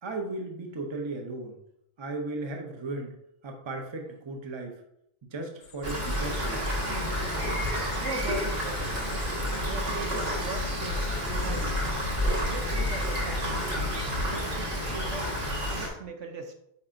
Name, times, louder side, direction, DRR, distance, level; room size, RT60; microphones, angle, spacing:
voice 1, 0.0-1.6 2.0-3.1 3.4-4.8 5.3-6.7, right 2 dB, 25° right, 3 dB, 0.7 m, -36 dB
sound 1, 5.6-14.3, left 4 dB, 70° left, 0.9 m, -39 dB
Rain, 5.8-15.9, equal, 50° right, 1.6 m, -30 dB
voice 2, 7.9-9.0 9.6-11.8 12.5-13.7 14.2-15.3 15.7-16.5, right 4 dB, 70° right, 4 dB, 1.1 m, -39 dB
8.6 x 4.2 x 2.6 m, 0.77 s
omnidirectional pair, 1.4 m